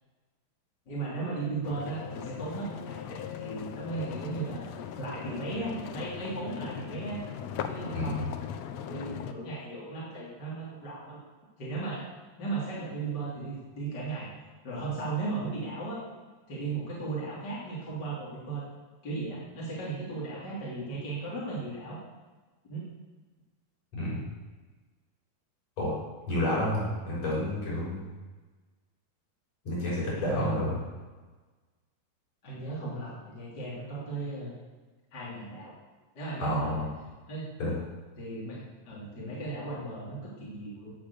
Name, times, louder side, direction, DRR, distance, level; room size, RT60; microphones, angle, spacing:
voice 1, 0.9-7.2 7.7-8.3 8.9-11.2 11.6-12.0 12.4-14.3 14.6-16.0 16.5-18.6 19.0-22.0 22.7-22.8 30.2-30.7 32.4-34.5 35.1-35.7 36.1-36.8 37.3-37.4 38.2-40.9, right 3 dB, 30° left, -6 dB, 3.3 m, -36 dB
sound 1, 1.6-9.3, left 8 dB, 75° left, 1.6 m, -39 dB
voice 2, 24.0-24.3 25.8-25.9 26.3-28.0 29.6-30.7 36.4-36.8 37.6-37.7, left 1 dB, 45° left, -7 dB, 7.6 m, -30 dB
17.0 x 8.8 x 7.1 m, 1.3 s
omnidirectional pair, 4.2 m